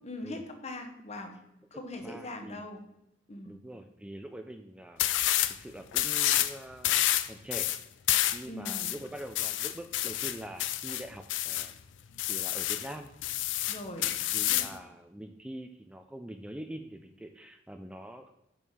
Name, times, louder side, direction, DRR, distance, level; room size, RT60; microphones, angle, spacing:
voice 1, 0.0-1.3 1.7-2.8 3.3-3.5 8.5-8.9 13.7-14.1 14.5-14.6, left 1 dB, 35° left, 5 dB, 1.0 m, -41 dB
voice 2, 1.7-2.6 3.4-7.7 8.3-11.7 12.2-13.1 14.3-18.4, right 1 dB, 5° right, 6 dB, 0.3 m, -44 dB
sound 1, 5.0-5.6 5.9-6.5 6.8-11.7 12.2-12.9 13.2-14.8, left 13 dB, 85° left, 0.4 m, -29 dB
5.5 x 4.7 x 5.5 m, 0.84 s
head